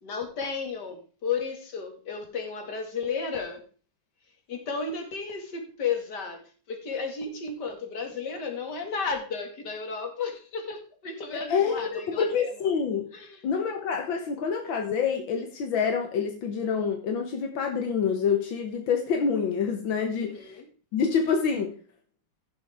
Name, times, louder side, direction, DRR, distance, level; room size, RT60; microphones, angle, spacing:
voice 1, 0.0-3.6 4.5-12.5 13.1-13.4 20.2-20.7, left 5 dB, 60° left, 3 dB, 2.7 m, -33 dB
voice 2, 11.3-13.1 13.4-20.6 20.9-21.7, left 6 dB, 85° left, 4 dB, 2.0 m, -27 dB
16.0 x 7.0 x 3.5 m, 0.37 s
omnidirectional pair, 2.1 m